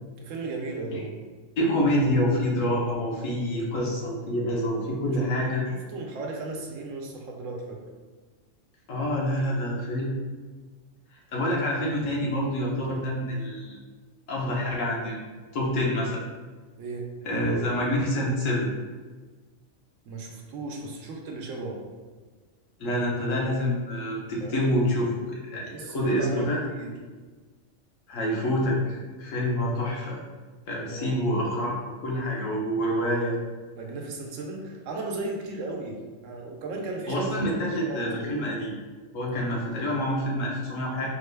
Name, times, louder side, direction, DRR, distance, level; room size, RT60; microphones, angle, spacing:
voice 1, 0.2-1.2 5.7-7.8 11.4-11.5 16.8-17.1 20.0-21.8 24.4-24.7 25.7-27.0 30.9-31.2 33.7-38.4, right 2 dB, 80° right, 1 dB, 1.0 m, -36 dB
voice 2, 1.6-5.6 8.9-10.1 11.3-13.8 14.3-15.2 15.5-16.2 17.2-18.7 22.8-26.6 28.1-30.2 30.7-33.4 37.1-38.8 39.1-41.1, equal, 90° left, -3 dB, 1.2 m, -27 dB
4.1 x 2.2 x 3.3 m, 1.4 s
omnidirectional pair, 1.3 m